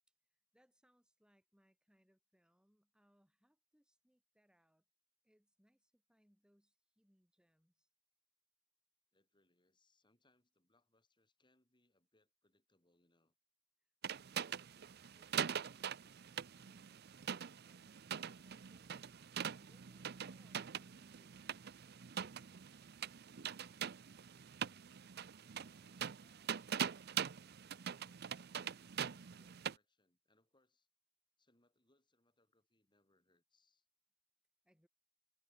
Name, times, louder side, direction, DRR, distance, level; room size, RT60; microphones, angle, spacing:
voice 1, 0.3-4.8 5.2-7.9 19.6-22.0 34.6-34.9, equal, 5° right, 6.8 m, -76 dB
voice 2, 9.1-13.4 25.6-30.9 31.4-33.9, left 2 dB, 25° left, 6.7 m, -78 dB
sound 1, 14.0-29.7, right 8 dB, 55° right, 0.6 m, -43 dB
head